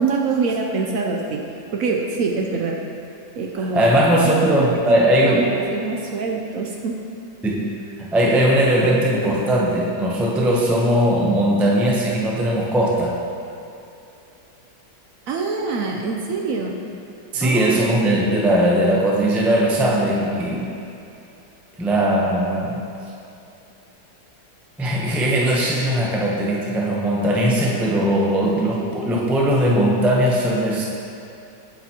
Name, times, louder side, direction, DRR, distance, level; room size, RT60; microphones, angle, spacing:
voice 1, 0.0-1.4 1.7-2.8 3.4-4.0 4.2-6.9 15.3-16.8 17.4-17.8, right 4 dB, 65° right, 0 dB, 0.9 m, -25 dB
voice 2, 3.7-5.5 7.4-7.7 8.0-13.1 17.3-20.7 21.8-22.8 24.8-30.8, right 1 dB, ahead, -4 dB, 0.4 m, -19 dB
8.2 x 8.0 x 2.9 m, 2.8 s
omnidirectional pair, 1.8 m